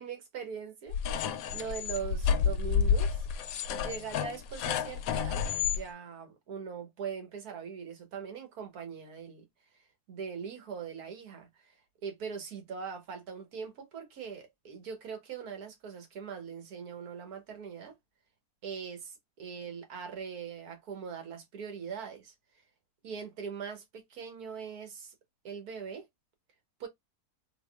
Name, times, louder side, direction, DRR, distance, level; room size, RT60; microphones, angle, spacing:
voice 1, 0.0-3.3 3.7-9.4 10.1-11.8 12.0-18.0 18.6-22.3 23.0-25.1 25.4-26.1 26.8-26.9, right 6 dB, 70° right, 1.6 m, -41 dB
sound 1, 0.9-5.8, left 7 dB, 70° left, 0.9 m, -30 dB
3.6 x 2.9 x 2.3 m
omnidirectional pair, 1.7 m